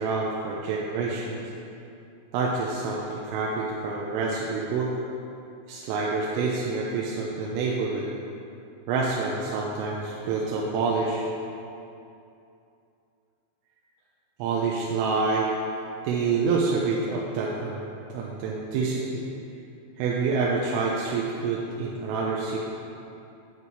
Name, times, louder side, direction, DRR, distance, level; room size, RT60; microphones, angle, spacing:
voice 1, 0.0-1.5 2.3-4.9 5.7-8.1 8.9-11.3 14.4-15.5 16.0-19.2 20.0-22.6, right 4 dB, 90° right, -3 dB, 3.4 m, -27 dB
9.6 x 8.4 x 4.6 m, 2.7 s
omnidirectional pair, 5.8 m